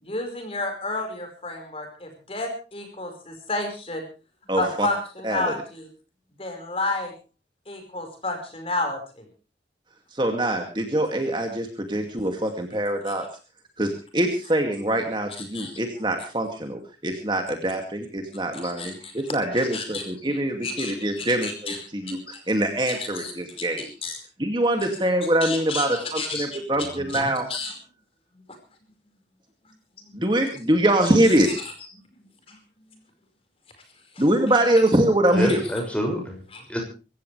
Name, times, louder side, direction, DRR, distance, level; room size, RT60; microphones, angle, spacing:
voice 1, 0.0-4.0 4.6-5.9 6.4-7.1 7.7-9.0 15.5-15.7 18.5-18.9 19.5-20.0 20.3-21.8 22.0-22.1 23.0-23.3 24.0-24.2 25.4-26.5 27.5-27.7 32.5-32.6 36.5-36.6, left 2 dB, 35° left, 4 dB, 5.0 m, -31 dB
voice 2, 4.5-4.9 5.2-5.5 10.1-13.2 13.8-23.9 24.4-27.5 30.1-31.6 34.2-35.6, right 1 dB, 25° right, 4 dB, 2.4 m, -24 dB
voice 3, 26.8-27.3 35.3-36.4 36.7-36.8, equal, 5° left, 1 dB, 6.4 m, -28 dB
25.0 x 15.5 x 3.3 m, 0.35 s
head